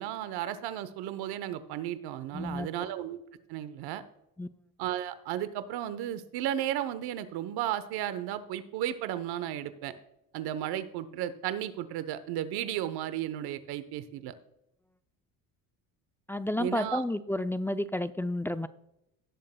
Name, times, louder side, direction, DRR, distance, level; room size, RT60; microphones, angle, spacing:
voice 1, 0.0-3.2 3.5-4.0 4.8-9.9 10.3-14.3 16.6-17.0, right 11 dB, 75° right, 13 dB, 1.0 m, -34 dB
voice 2, 2.3-2.7 4.4-4.5 16.3-18.7, left 1 dB, 5° left, 12 dB, 0.3 m, -31 dB
17.0 x 7.5 x 2.3 m, 0.84 s
supercardioid pair, 90°, 39 cm